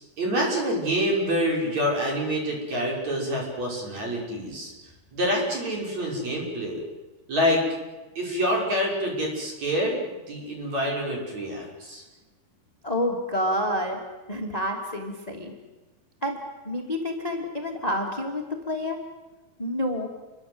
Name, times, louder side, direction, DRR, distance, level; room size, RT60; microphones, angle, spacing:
voice 1, 0.2-4.7 5.1-6.8 7.3-7.6 8.2-12.0, equal, 45° right, -1 dB, 7.4 m, -26 dB
voice 2, 12.8-14.0 14.3-15.5 16.2-16.4 16.6-19.0 19.6-20.1, left 1 dB, 10° left, 2 dB, 2.3 m, -28 dB
29.0 x 24.0 x 8.1 m, 1.2 s
omnidirectional pair, 4.4 m